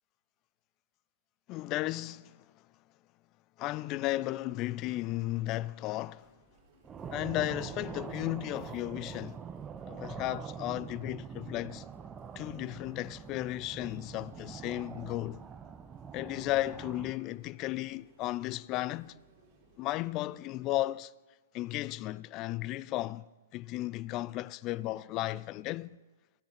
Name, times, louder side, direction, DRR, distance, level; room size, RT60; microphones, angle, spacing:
voice 1, 1.5-2.4 3.6-6.3 7.1-9.4 9.9-11.8 12.4-15.4 16.1-19.1 19.8-21.1 21.5-23.2 23.5-26.0, left 16 dB, 30° left, 0.3 m, -34 dB
Chatter, 6.0-20.4, right 1 dB, 40° right, 3.2 m, -63 dB
sound 1, 6.8-17.1, right 7 dB, 15° right, 0.6 m, -44 dB
13.5 x 10.5 x 5.9 m
figure-of-eight pair, 115°, 0 cm